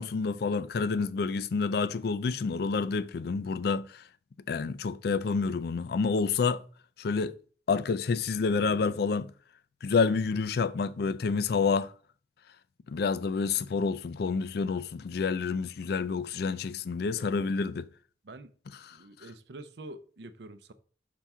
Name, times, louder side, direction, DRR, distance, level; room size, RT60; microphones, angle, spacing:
voice 1, 0.0-4.0 4.5-6.6 7.0-7.4 7.7-9.3 9.8-11.9 12.9-17.9 18.9-19.0, left 4 dB, 55° left, 0.4 m, -28 dB
voice 2, 17.4-17.7 18.2-18.5 18.9-20.7, right 2 dB, 65° right, 0.6 m, -47 dB
5.8 x 5.5 x 3.5 m
head